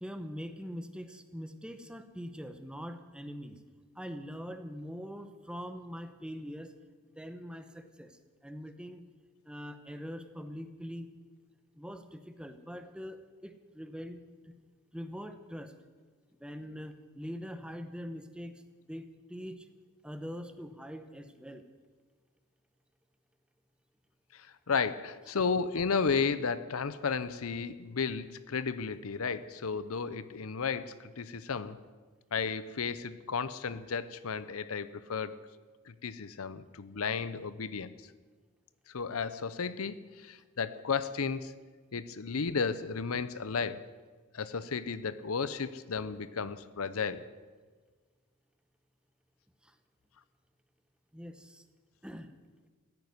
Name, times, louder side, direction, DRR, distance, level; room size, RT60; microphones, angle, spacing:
voice 1, 0.0-3.6 3.9-6.7 7.1-9.0 9.4-11.1 11.7-14.5 14.9-15.7 16.4-18.5 18.9-19.7 20.0-21.6 49.6-49.7 51.1-51.6 52.0-52.3, equal, 5° right, 9 dB, 1.0 m, -43 dB
voice 2, 24.3-31.8 32.3-35.4 35.9-38.0 38.9-41.5 41.9-43.9 44.3-47.2, left 5 dB, 70° left, 14 dB, 0.7 m, -33 dB
15.5 x 9.4 x 9.6 m, 1.4 s
head